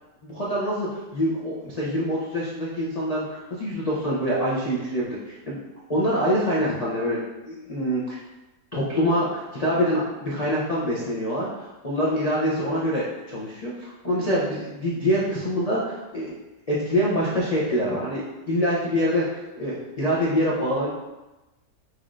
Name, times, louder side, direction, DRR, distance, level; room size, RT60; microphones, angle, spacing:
voice 1, 0.2-5.6 5.9-8.2 8.7-16.3 16.7-20.9, equal, 50° left, -7 dB, 0.4 m, -25 dB
5.8 x 3.1 x 2.5 m, 1.1 s
omnidirectional pair, 1.7 m